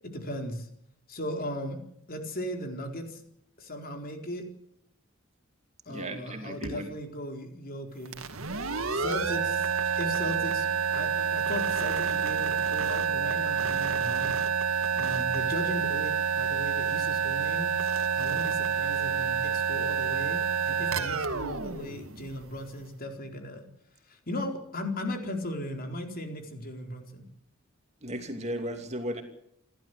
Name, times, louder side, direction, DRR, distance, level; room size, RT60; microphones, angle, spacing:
voice 1, 0.0-0.7 1.1-1.8 2.1-3.2 3.6-4.4 5.9-8.1 8.9-9.7 10.0-14.3 15.0-17.7 18.2-23.6 24.1-27.2, left 1 dB, 45° left, 4 dB, 4.3 m, -37 dB
voice 2, 5.9-6.9 28.0-29.2, equal, 30° right, 6 dB, 2.8 m, -35 dB
hit - metallic resonant, 6.6-9.5, left 1 dB, 65° left, 4.2 m, -48 dB
sound 1, 8.1-22.7, right 7 dB, 75° right, 2.1 m, -28 dB
29.0 x 12.5 x 8.3 m, 0.73 s
head